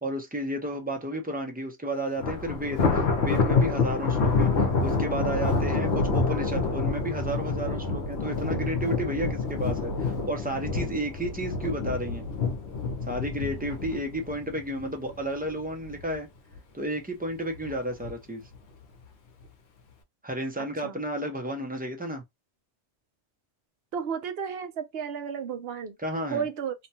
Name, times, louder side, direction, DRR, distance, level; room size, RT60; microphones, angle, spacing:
voice 1, 0.0-2.9 3.2-12.3 13.1-16.3 16.7-18.4 20.2-22.2 26.0-26.4, right 1 dB, 15° right, 0.3 m, -32 dB
Thunder, 2.2-15.5 15.9-16.2 16.6-16.7 17.5-18.1, left 4 dB, 70° left, 1.0 m, -27 dB
voice 2, 6.3-6.6 20.6-21.0 23.9-26.0 26.3-26.7, right 7 dB, 65° right, 0.8 m, -33 dB
2.9 x 2.2 x 2.7 m
omnidirectional pair, 1.2 m